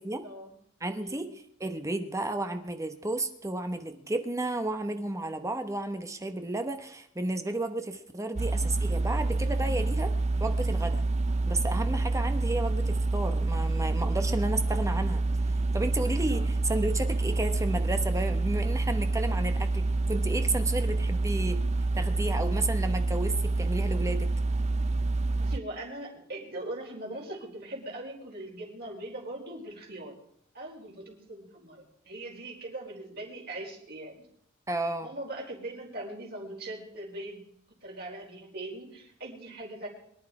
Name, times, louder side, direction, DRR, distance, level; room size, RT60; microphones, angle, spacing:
voice 1, 0.8-10.1 10.4-11.0 11.5-15.2 15.7-21.6 21.9-24.3 34.7-35.1, right 2 dB, 15° right, 7 dB, 1.1 m, -32 dB
sound 1, 8.4-25.6, right 2 dB, 35° right, 0.5 m, -27 dB
voice 2, 25.4-30.2 30.5-34.2 35.0-37.4 37.8-39.9, right 1 dB, 50° right, -1 dB, 4.8 m, -40 dB
23.5 x 11.0 x 4.9 m, 0.70 s
head